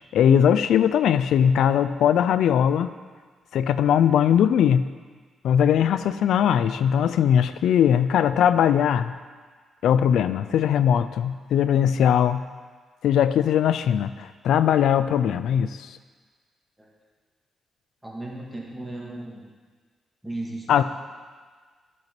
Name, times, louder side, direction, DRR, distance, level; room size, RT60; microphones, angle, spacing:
voice 1, 0.1-2.9 3.5-4.8 5.4-9.2 9.8-12.4 13.0-16.0 20.7-20.8, left 9 dB, 90° left, 12 dB, 0.3 m, -20 dB
voice 2, 18.0-19.4 20.2-20.8, right 2 dB, 10° right, -3 dB, 1.7 m, -36 dB
10.5 x 5.3 x 5.9 m, 1.5 s
cardioid pair, 145°, 0 cm